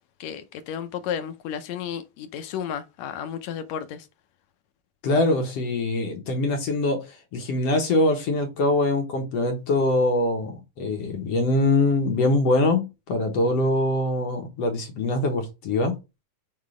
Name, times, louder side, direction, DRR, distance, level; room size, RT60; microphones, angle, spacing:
voice 1, 0.2-4.1, left 8 dB, 80° left, 1.7 m, -33 dB
voice 2, 5.0-16.0, left 2 dB, 60° left, 2.1 m, -23 dB
6.7 x 3.7 x 4.9 m
omnidirectional pair, 3.7 m